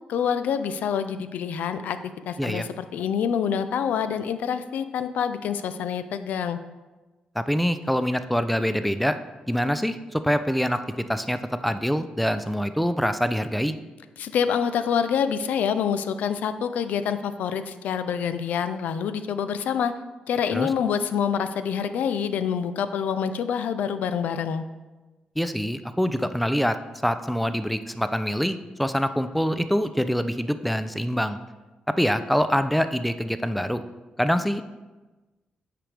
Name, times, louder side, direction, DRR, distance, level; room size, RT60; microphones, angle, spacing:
voice 1, 0.1-2.0 2.3-6.6 14.2-19.9 20.3-24.6, left 7 dB, 85° left, 11 dB, 0.4 m, -26 dB
voice 2, 7.4-9.2 9.5-13.7 20.5-20.7 25.4-26.8 27.0-31.4 31.9-33.8 34.2-34.6, equal, ahead, 11 dB, 0.3 m, -25 dB
8.9 x 5.0 x 3.3 m, 1.2 s
cardioid pair, 110°, 3 cm